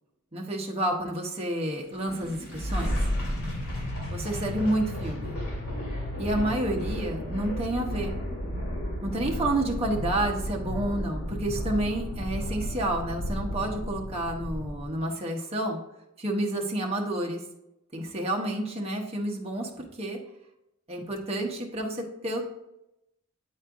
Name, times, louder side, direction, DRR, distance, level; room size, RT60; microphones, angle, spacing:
voice 1, 0.3-2.9 4.1-5.4 6.2-8.1 9.0-15.8 16.2-17.4 17.9-20.2 20.9-22.5, right 1 dB, 30° right, 0 dB, 0.9 m, -30 dB
sound 1, 1.9-15.0, equal, 80° left, 2.2 m, -33 dB
9.1 x 4.3 x 2.5 m, 0.88 s
head